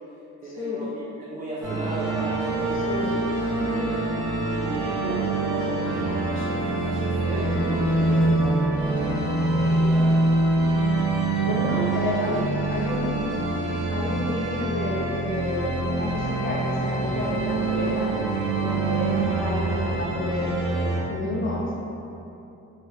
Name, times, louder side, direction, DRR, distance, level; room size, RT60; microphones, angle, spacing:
voice 1, 0.4-4.0 4.6-10.1 11.8-11.9 12.3-12.4, right 1 dB, 25° right, -8 dB, 0.5 m, -36 dB
sound 1, 1.6-21.0, right 2 dB, 90° right, 0.7 m, -25 dB
voice 2, 2.7-3.1 11.4-13.5 13.9-18.1 18.6-20.5 21.1-21.7, left 1 dB, 40° left, -5 dB, 0.8 m, -30 dB
3.4 x 2.5 x 2.8 m, 2.9 s
cardioid pair, 90°, 30 cm